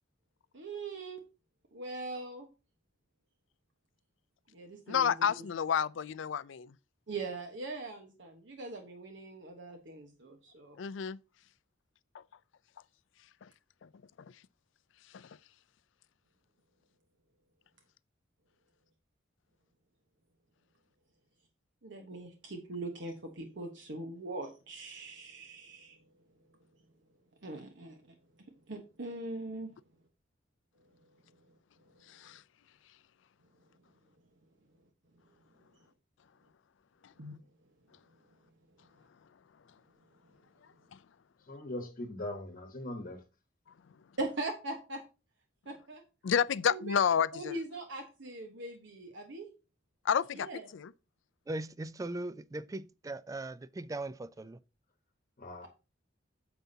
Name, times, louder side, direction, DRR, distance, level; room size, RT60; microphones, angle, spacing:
voice 1, 0.5-1.2 1.7-2.5 4.5-5.1 7.1-10.8 21.8-26.0 27.4-28.1 28.7-29.7 37.2-37.3 44.2-45.0 45.7-46.0 46.7-47.0 47.3-49.5 50.3-50.6, right 2 dB, 70° right, 1.1 m, -41 dB
voice 2, 4.9-6.7 10.8-11.2 13.4-13.5 13.8-13.9 15.1-15.3 32.1-32.4 46.2-47.5 50.0-50.5 50.7-50.9, left 7 dB, 70° left, 0.4 m, -30 dB
voice 3, 41.5-43.2 55.4-55.7, left 1 dB, 45° left, 1.1 m, -40 dB
voice 4, 51.5-54.6, right 2 dB, 20° right, 0.3 m, -39 dB
9.2 x 7.0 x 2.7 m
head